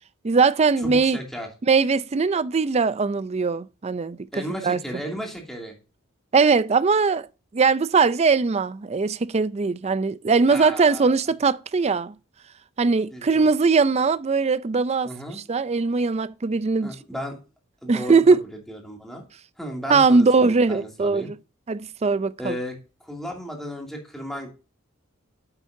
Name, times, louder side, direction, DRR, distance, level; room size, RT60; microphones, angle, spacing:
voice 1, 0.2-1.2 1.7-4.2 4.6-4.8 6.3-7.3 7.5-12.1 12.8-15.1 15.5-16.9 17.9-18.4 19.9-21.3 21.7-22.6, right 4 dB, 30° right, 0.4 m, -20 dB
voice 2, 0.8-1.5 4.3-5.7 10.5-11.1 13.1-13.4 15.0-15.4 16.8-17.4 17.8-18.2 18.7-19.2 19.6-21.3 22.4-22.7 23.0-24.5, equal, ahead, 2.5 m, -34 dB
9.9 x 8.3 x 2.7 m
head